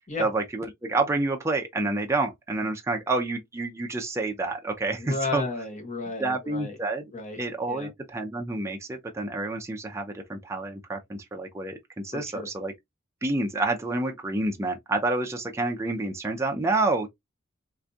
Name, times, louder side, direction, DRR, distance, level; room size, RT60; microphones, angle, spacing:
voice 1, 0.2-5.5 6.2-7.0 7.4-12.7 13.2-17.1, right 2 dB, 15° right, 0.4 m, -28 dB
voice 2, 5.0-6.8 7.1-7.4 7.7-7.9 12.1-12.5, left 3 dB, 40° left, 0.9 m, -33 dB
3.9 x 2.5 x 2.2 m
head